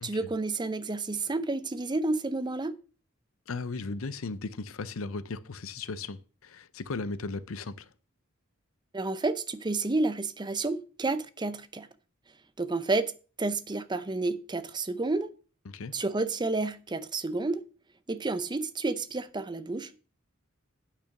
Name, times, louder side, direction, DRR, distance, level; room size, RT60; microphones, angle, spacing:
voice 1, 0.0-2.8 8.9-11.9 12.6-13.1 13.4-15.3 15.9-17.6 18.1-20.0, right 3 dB, 20° right, 0.6 m, -30 dB
voice 2, 3.5-7.9 15.7-15.9, left 3 dB, 85° left, 0.7 m, -36 dB
9.0 x 5.7 x 5.9 m
head